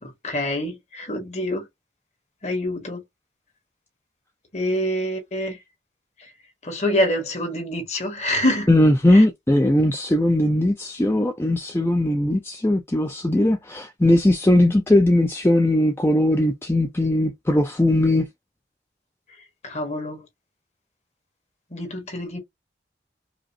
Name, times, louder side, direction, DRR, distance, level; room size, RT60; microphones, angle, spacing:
voice 1, 0.0-1.7 2.4-3.0 4.5-5.6 6.2-6.3 6.6-8.7 9.1-9.2 19.6-20.3 21.7-22.4, left 1 dB, 40° left, 1.3 m, -26 dB
voice 2, 8.7-18.3, left 1 dB, 15° left, 0.4 m, -19 dB
5.0 x 2.1 x 2.6 m
head